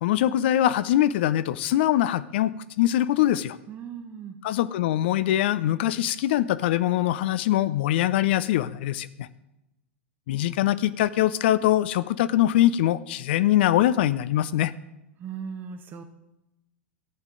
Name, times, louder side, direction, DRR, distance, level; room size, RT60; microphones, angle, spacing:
voice 1, 0.0-3.6 4.4-9.3 10.3-14.7, left 13 dB, 55° left, 16 dB, 0.5 m, -23 dB
voice 2, 3.7-4.4 15.2-16.0, right 7 dB, 30° right, 6 dB, 0.9 m, -37 dB
14.0 x 8.9 x 3.8 m, 0.91 s
figure-of-eight pair, 90°, 7 cm